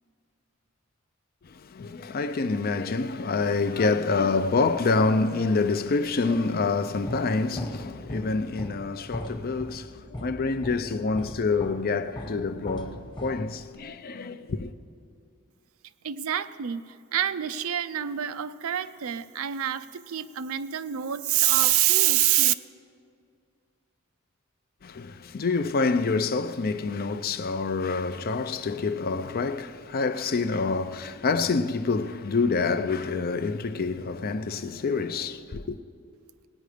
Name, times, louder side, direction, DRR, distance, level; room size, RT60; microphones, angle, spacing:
voice 1, 1.4-14.7 24.8-35.8, left 4 dB, 45° left, 0.5 m, -27 dB
sound 1, 5.9-13.9, left 1 dB, 25° left, 1.2 m, -40 dB
voice 2, 16.0-22.5, right 12 dB, 80° right, 0.5 m, -26 dB
18.0 x 9.2 x 5.0 m
head